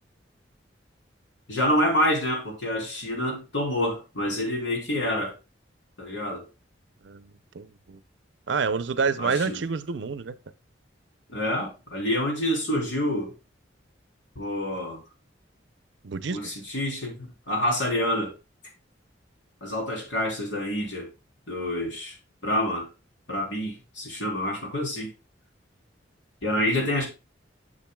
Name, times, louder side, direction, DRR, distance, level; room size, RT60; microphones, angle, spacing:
voice 1, 1.5-5.3 6.0-6.4 9.2-9.6 11.3-13.3 14.3-15.0 16.3-18.3 19.6-21.1 21.5-22.2 22.4-22.9 23.3-25.1 26.4-27.1, left 1 dB, 70° left, 3.3 m, -27 dB
voice 2, 7.0-8.0 8.5-10.3 16.0-16.4, right 5 dB, 70° right, 0.5 m, -28 dB
10.5 x 6.5 x 2.2 m
head